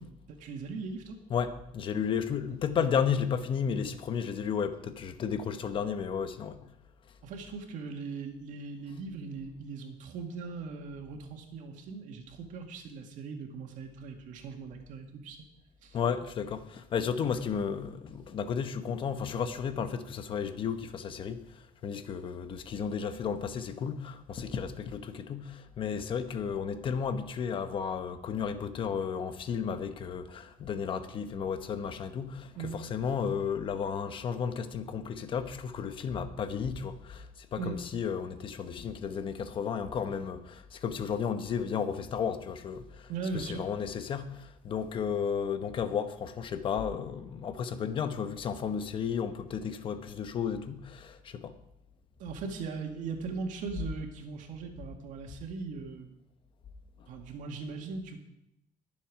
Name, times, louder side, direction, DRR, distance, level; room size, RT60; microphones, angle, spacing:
voice 1, 0.0-1.2 2.5-2.6 7.2-15.4 15.8-16.0 32.6-32.8 37.6-37.8 43.1-43.6 52.2-56.1 57.1-58.2, right 4 dB, 65° right, 2.0 m, -39 dB
voice 2, 1.3-6.7 15.9-51.5 57.0-57.1, left 7 dB, 35° left, 0.9 m, -33 dB
21.0 x 7.4 x 4.8 m
cardioid pair, 170°, 14 cm